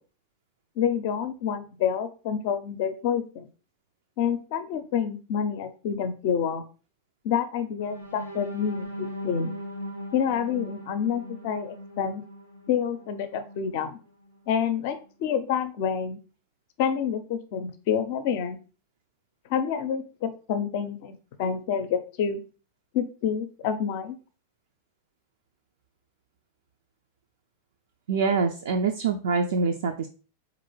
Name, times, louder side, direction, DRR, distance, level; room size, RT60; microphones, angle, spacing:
voice 1, 0.8-3.5 4.2-6.6 7.2-9.5 10.1-12.2 12.7-14.0 14.5-16.2 16.8-18.6 19.5-22.4 22.9-24.2, left 7 dB, 50° left, 9 dB, 0.4 m, -28 dB
sound 1, 7.8-13.7 14.2-14.4 14.7-15.0, equal, 85° right, 0.7 m, -39 dB
voice 2, 28.1-30.1, right 4 dB, 60° right, 4 dB, 0.3 m, -25 dB
3.8 x 2.5 x 3.0 m, 0.36 s
figure-of-eight pair, 90°, 0 cm